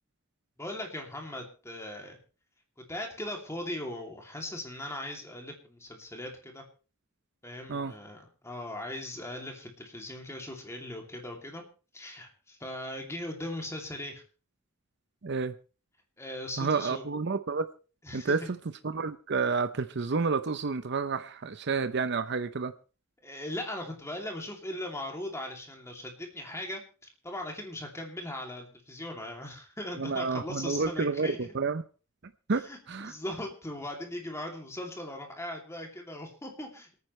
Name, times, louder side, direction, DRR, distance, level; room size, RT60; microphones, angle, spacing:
voice 1, 0.6-2.2 2.8-6.6 7.4-11.6 11.9-14.2 16.2-17.0 18.0-18.4 23.2-26.8 27.2-31.5 32.7-36.9, left 1 dB, 15° left, 2.7 m, -39 dB
voice 2, 15.2-15.6 16.6-17.7 18.1-18.6 18.8-22.7 30.0-31.8 32.5-33.1, right 4 dB, 60° right, 0.7 m, -30 dB
27.0 x 9.5 x 3.2 m
head